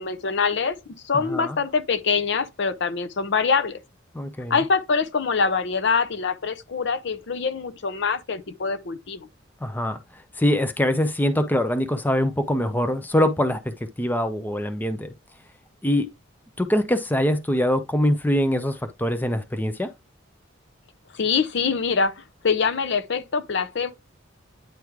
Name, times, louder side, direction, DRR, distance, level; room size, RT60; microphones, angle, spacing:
voice 1, 0.0-3.8 4.5-9.3 21.1-23.9, left 5 dB, 60° left, 0.6 m, -24 dB
voice 2, 1.1-1.6 4.1-4.6 9.6-10.0 10.4-15.1 15.8-16.1 16.6-19.9, left 1 dB, 10° left, 0.5 m, -23 dB
9.1 x 3.1 x 3.6 m
head